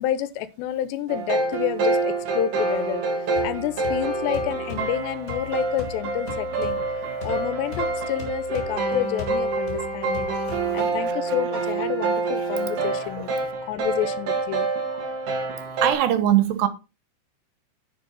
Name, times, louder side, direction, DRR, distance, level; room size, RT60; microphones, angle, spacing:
voice 1, 0.0-3.0 3.4-6.8 7.2-10.3 10.7-15.0, left 12 dB, 85° left, 2.9 m, -29 dB
sound 1, 1.1-15.9, right 3 dB, 55° right, 3.6 m, -27 dB
sound 2, 3.4-11.1, left 6 dB, 30° left, 2.8 m, -39 dB
voice 2, 10.3-11.2 13.2-13.3 15.8-16.7, right 12 dB, 80° right, 3.1 m, -23 dB
9.5 x 7.2 x 4.0 m
omnidirectional pair, 5.0 m